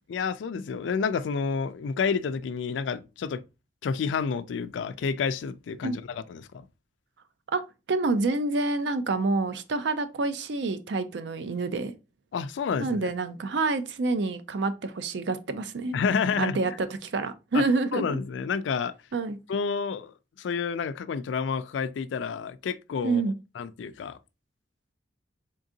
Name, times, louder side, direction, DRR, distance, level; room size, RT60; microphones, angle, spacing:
voice 1, 0.1-3.4 3.8-6.7 12.3-13.1 15.9-16.6 17.5-17.6 17.9-18.9 19.5-23.2 23.6-24.2, left 5 dB, 80° left, 0.3 m, -29 dB
voice 2, 7.9-11.9 12.8-16.0 16.4-18.2 19.1-19.4 23.0-23.3, right 3 dB, 65° right, 0.5 m, -27 dB
3.7 x 3.5 x 2.6 m
head